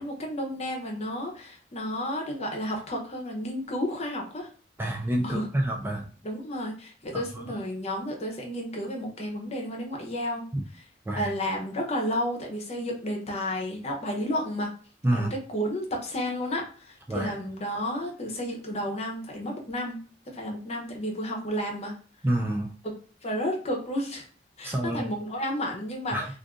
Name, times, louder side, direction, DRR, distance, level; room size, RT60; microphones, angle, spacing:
voice 1, 0.0-4.5 5.2-5.5 6.2-10.5 10.7-10.8 11.1-14.7 15.1-20.0 20.3-21.9 22.8-22.9 23.2-24.3 24.6-26.2, equal, 35° left, 1 dB, 0.8 m, -32 dB
voice 2, 4.8-6.1 7.1-7.2 10.5-10.6 11.1-11.3 15.0-15.3 17.1-17.3 22.2-22.7 24.6-25.1 26.1-26.3, right 1 dB, 10° right, 2 dB, 0.3 m, -27 dB
2.5 x 2.5 x 3.6 m, 0.42 s
head